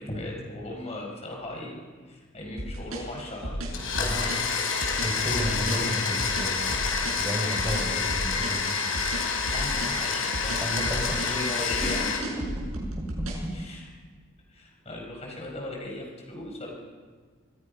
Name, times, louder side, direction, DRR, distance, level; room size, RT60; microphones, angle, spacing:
voice 1, 0.0-3.7 9.5-12.2 13.5-13.9 14.5-16.7, left 1 dB, 30° left, 1 dB, 5.1 m, -37 dB
sound 1, 2.6-13.5, right 1 dB, 80° right, 7.2 m, -34 dB
Domestic sounds home sounds, 3.7-12.2, left 5 dB, 70° left, 4.6 m, -28 dB
voice 2, 4.0-4.4 5.0-6.8 7.2-8.7 10.6-11.2, equal, 15° right, -1 dB, 5.4 m, -32 dB
27.5 x 22.5 x 5.5 m, 1.5 s
head